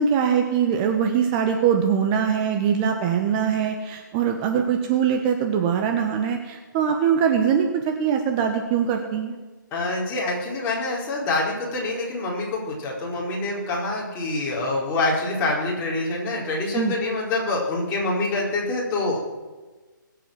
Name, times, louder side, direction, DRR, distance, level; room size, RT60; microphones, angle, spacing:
voice 1, 0.0-9.4 16.7-16.9, right 7 dB, 25° right, 4 dB, 1.3 m, -22 dB
voice 2, 9.7-19.2, left 2 dB, 20° left, -3 dB, 4.4 m, -26 dB
21.0 x 8.3 x 7.6 m, 1.3 s
hypercardioid pair, 145°, 11 cm